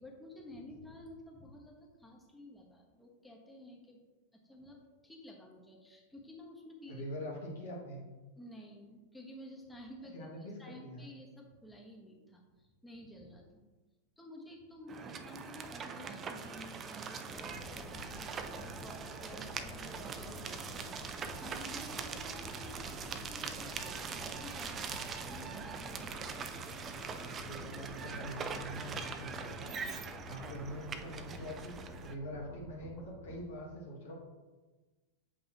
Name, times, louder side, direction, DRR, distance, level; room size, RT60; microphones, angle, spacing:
voice 1, 0.0-4.0 4.3-7.0 8.4-13.6 14.2-24.0 24.4-26.4, left 1 dB, 5° left, -1 dB, 1.2 m, -52 dB
voice 2, 6.9-8.0 10.1-11.1 27.4-29.7 30.2-34.1, equal, 65° left, -4 dB, 1.7 m, -44 dB
sound 1, 14.9-32.1, right 5 dB, 25° right, 0.5 m, -42 dB
sound 2, 17.3-33.4, left 4 dB, 25° left, 1.0 m, -51 dB
7.7 x 5.4 x 3.0 m, 1.2 s
figure-of-eight pair, 90°, 0 cm